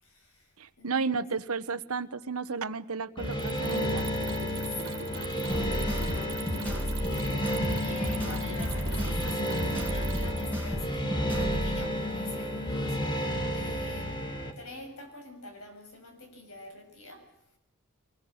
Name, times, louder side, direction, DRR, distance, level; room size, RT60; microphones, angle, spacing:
voice 1, 0.0-1.2 4.5-7.6 7.8-14.3 14.6-17.3, left 2 dB, 75° left, 4 dB, 7.0 m, -47 dB
voice 2, 0.6-4.1, right 4 dB, 90° right, 14 dB, 1.1 m, -33 dB
sound 1, 3.2-14.5, equal, 20° left, 2.9 m, -32 dB
Mechanisms, 3.2-10.7, right 5 dB, 75° right, 3.0 m, -42 dB
sound 2, 5.5-11.7, equal, 5° left, 5.0 m, -33 dB
25.0 x 20.5 x 7.9 m, 0.78 s
head